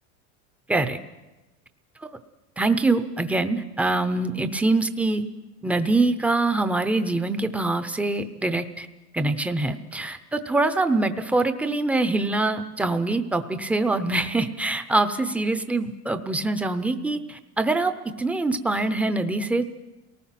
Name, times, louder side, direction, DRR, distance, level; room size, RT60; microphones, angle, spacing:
voice 1, 2.6-5.2 5.6-8.9 9.1-19.7, right 2 dB, 5° right, 9 dB, 0.6 m, -24 dB
28.5 x 19.0 x 5.9 m, 1.1 s
supercardioid pair, 145°, 46 cm